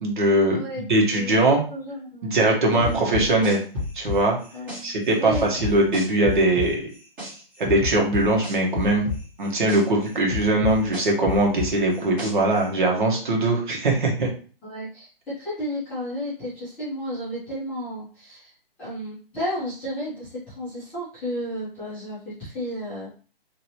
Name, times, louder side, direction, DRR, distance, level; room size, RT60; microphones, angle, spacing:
voice 1, 0.0-0.6 0.9-1.6 2.2-3.6 3.9-4.4 4.8-6.8 7.2-7.3 7.6-9.1 9.4-14.3, right 2 dB, 55° right, -1 dB, 1.3 m, -21 dB
voice 2, 0.5-0.8 1.1-1.4 1.7-2.4 2.8-3.3 4.5-5.5 14.6-18.5 18.8-23.1, equal, 5° left, -13 dB, 0.6 m, -33 dB
sound 1, 2.8-4.8 5.3-7.3 7.6-9.8 10.3-12.6, left 3 dB, 15° right, 1.2 m, -29 dB
3.0 x 2.8 x 2.9 m, 0.40 s
hypercardioid pair, 165°, 30 cm